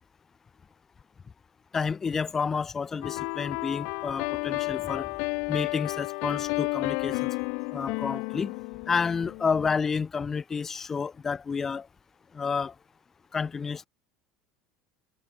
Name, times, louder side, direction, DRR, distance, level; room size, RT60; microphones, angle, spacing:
voice 1, 1.7-5.1 5.5-7.3 7.7-8.5 8.9-11.9 12.3-12.7 13.3-13.9, left 5 dB, 15° left, 4.5 m, -30 dB
sound 1, 3.0-9.8, left 33 dB, 65° left, 4.8 m, -32 dB
cardioid pair, 165°, 2 cm